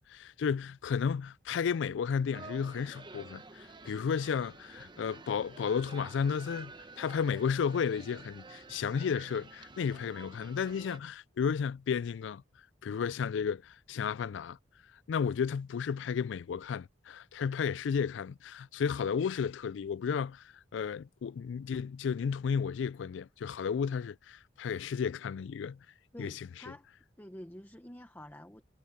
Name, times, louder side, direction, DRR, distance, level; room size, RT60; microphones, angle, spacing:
voice 1, 0.1-6.7 7.0-12.4 12.8-14.6 15.1-20.4 20.7-25.8 26.2-26.3, left 6 dB, 70° left, 0.3 m, -33 dB
sound 1, 2.3-11.0, right 3 dB, 25° right, 1.0 m, -50 dB
voice 2, 26.1-26.9 27.2-28.6, equal, 10° left, 1.1 m, -48 dB
head